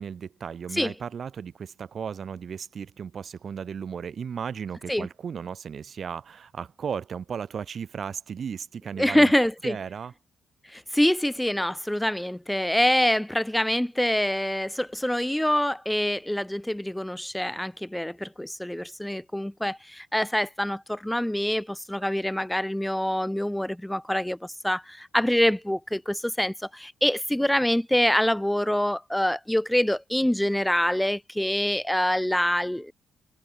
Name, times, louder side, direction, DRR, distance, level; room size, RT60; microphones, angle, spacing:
voice 1, 0.0-9.3 9.6-10.1, right 7 dB, 50° right, 1.6 m, -35 dB
voice 2, 9.0-9.8 10.7-32.9, left 1 dB, 5° left, 0.8 m, -25 dB
cardioid pair, 90°, 0 cm